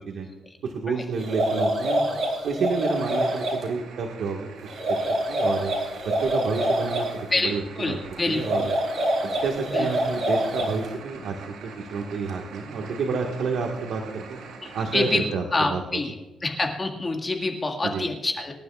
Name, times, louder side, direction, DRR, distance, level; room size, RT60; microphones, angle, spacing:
voice 1, 0.6-2.2 2.4-4.5 5.3-5.7 6.0-8.0 8.2-8.7 9.2-11.3 11.9-14.4 14.7-16.0 17.8-18.1, right 4 dB, 70° right, 1 dB, 1.6 m, -29 dB
sound 1, 1.2-3.6 4.7-7.1 8.3-10.9, right 1 dB, 50° right, 4.7 m, -26 dB
sound 2, 2.9-15.3, right 4 dB, 90° right, 5.0 m, -44 dB
voice 2, 7.3-8.7 9.7-10.1 14.6-15.2 15.5-16.1 16.4-18.5, left 2 dB, 25° left, 2 dB, 1.8 m, -27 dB
25.0 x 11.5 x 2.4 m, 1.1 s
cardioid pair, 145°, 0 cm